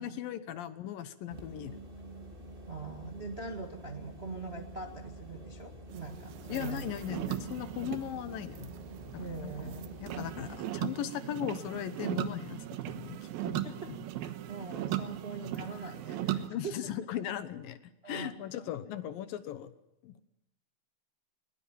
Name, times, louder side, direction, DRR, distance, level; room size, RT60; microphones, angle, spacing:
voice 1, 0.0-1.8 6.5-8.7 9.1-9.7 10.0-14.0 16.5-17.8 18.1-19.7 20.0-20.2, left 11 dB, 75° left, 12 dB, 2.8 m, -38 dB
sound 1, 1.3-10.6, right 1 dB, 15° right, 2.3 m, -47 dB
voice 2, 2.7-6.9 9.2-9.9 13.6-13.9 14.2-16.7 18.0-18.6, right 4 dB, 30° right, 3 dB, 1.1 m, -42 dB
sound 2, 5.9-16.5, right 12 dB, 90° right, 3.1 m, -38 dB
21.5 x 21.0 x 7.2 m, 0.86 s
omnidirectional pair, 4.2 m